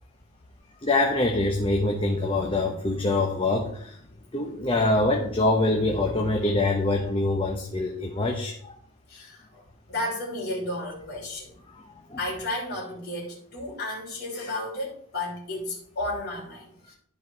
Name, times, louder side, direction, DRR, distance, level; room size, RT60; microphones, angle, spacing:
voice 1, 0.8-4.0 4.3-8.7 12.1-12.2, left 2 dB, 25° left, 1 dB, 0.9 m, -24 dB
voice 2, 9.1-9.6 9.9-11.6 12.2-16.9, left 1 dB, 50° left, -3 dB, 3.1 m, -33 dB
12.5 x 4.7 x 4.6 m, 0.64 s
head